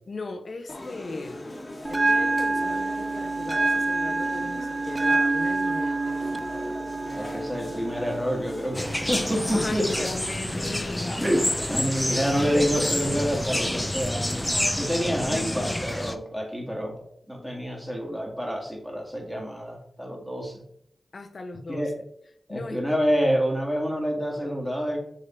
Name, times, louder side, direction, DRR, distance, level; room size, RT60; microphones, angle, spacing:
voice 1, 0.1-1.5 1.9-6.7 9.5-11.3 15.3-15.9 21.1-21.9 22.5-22.8, left 3 dB, 60° left, 8 dB, 0.7 m, -38 dB
sound 1, 0.7-13.8, left 1 dB, 40° left, 1.3 m, -40 dB
Bell, 1.8-9.8, right 3 dB, 35° right, 0.5 m, -27 dB
voice 2, 7.1-10.1 11.2-20.6 21.7-21.9 22.5-25.0, equal, 5° right, 1 dB, 2.1 m, -28 dB
sound 2, 8.7-16.2, left 1 dB, 15° left, 0.6 m, -28 dB
6.5 x 3.7 x 4.4 m, 0.71 s
cardioid pair, 40°, 0 cm